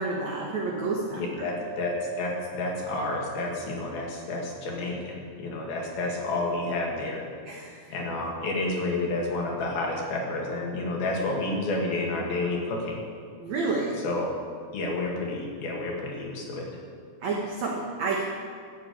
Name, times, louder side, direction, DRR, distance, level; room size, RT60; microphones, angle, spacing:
voice 1, 0.0-1.5 7.5-7.7 13.4-14.0 17.2-18.3, right 3 dB, 70° right, -1 dB, 1.7 m, -29 dB
voice 2, 1.1-7.2 7.9-13.0 14.0-14.3 14.7-16.7, left 2 dB, 60° left, -1 dB, 3.5 m, -30 dB
14.0 x 7.6 x 8.5 m, 2.1 s
omnidirectional pair, 5.1 m